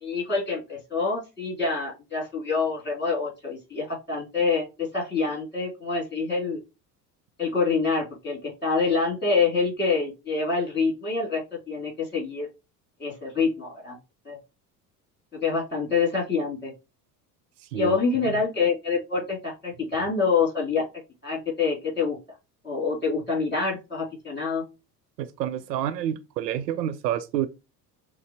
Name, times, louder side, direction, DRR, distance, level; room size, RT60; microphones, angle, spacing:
voice 1, 0.0-6.6 7.4-12.5 13.0-14.0 14.2-14.4 15.3-16.7 17.7-20.8 21.2-22.2 22.6-24.6, left 4 dB, 20° left, 2.6 m, -26 dB
voice 2, 25.2-27.5, right 11 dB, 75° right, 0.5 m, -28 dB
6.2 x 2.1 x 2.7 m
figure-of-eight pair, 65°, 50 cm